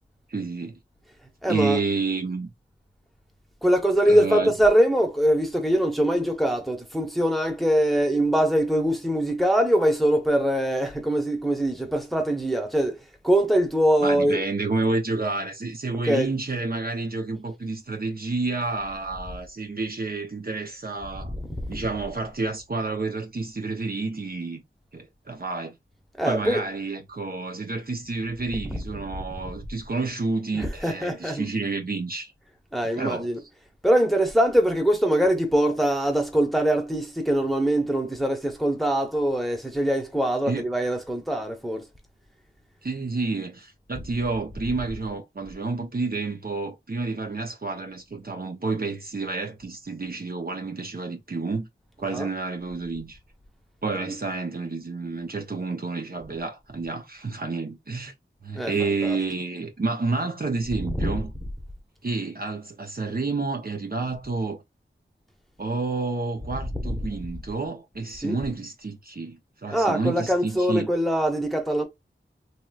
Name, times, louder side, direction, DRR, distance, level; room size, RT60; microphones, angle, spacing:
voice 1, 0.3-0.8 1.5-2.5 4.1-4.5 14.0-21.3 21.7-24.6 24.9-25.7 26.2-32.3 33.0-33.3 40.5-40.7 42.8-51.7 52.0-53.2 53.8-58.1 58.4-61.3 62.0-64.6 65.6-70.9, right 3 dB, 45° right, 0.7 m, -29 dB
voice 2, 1.4-1.8 3.6-13.0 13.2-14.4 16.0-16.3 21.2-21.8 26.2-26.7 28.6-29.0 30.5-31.5 32.7-33.4 33.8-41.8 52.0-52.3 54.1-54.2 58.5-59.2 60.8-61.2 66.5-67.1 68.2-68.4 69.7-71.8, right 1 dB, ahead, 0.9 m, -23 dB
3.0 x 2.9 x 2.3 m
wide cardioid pair, 55°, 20 cm